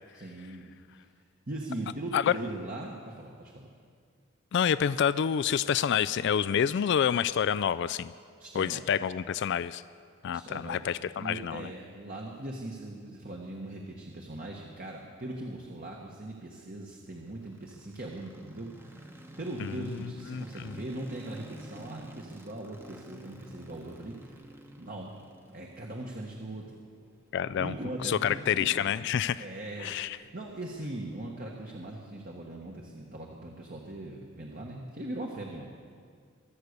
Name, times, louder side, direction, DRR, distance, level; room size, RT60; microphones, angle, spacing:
voice 1, 0.1-0.7 1.5-3.7 8.4-8.9 10.3-19.0 19.4-24.4 24.8-25.1 25.5-26.8 27.6-29.1 29.4-35.7, right 1 dB, 45° right, -1 dB, 1.4 m, -40 dB
voice 2, 4.5-8.1 8.5-9.8 10.2-11.7 19.6-19.7 20.0-20.8 27.3-27.7 28.0-29.4 29.8-30.2, left 8 dB, 60° left, 15 dB, 0.3 m, -28 dB
sound 1, 17.2-31.3, right 1 dB, 10° right, 1.0 m, -51 dB
24.0 x 8.3 x 6.6 m, 2.1 s
head